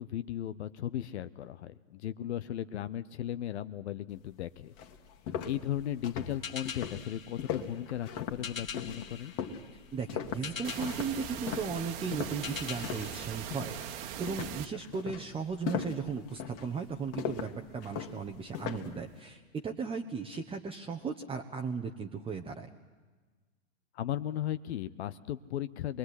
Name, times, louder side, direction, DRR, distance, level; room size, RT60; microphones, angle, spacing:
voice 1, 0.0-4.9 5.4-9.3 23.9-26.0, left 12 dB, 55° left, 12 dB, 0.9 m, -36 dB
sound 1, 4.3-4.4 4.8-13.2 13.5-13.9 14.3-19.0, left 8 dB, 40° left, 2.3 m, -39 dB
sound 2, 6.4-14.3, left 7 dB, 85° left, 1.2 m, -45 dB
voice 2, 9.7-22.7, right 5 dB, 15° right, 3 dB, 1.2 m, -36 dB
sound 3, 10.6-14.7, right 10 dB, 45° right, 1.6 m, -41 dB
26.0 x 21.0 x 9.9 m, 1.4 s
figure-of-eight pair, 105°, 39 cm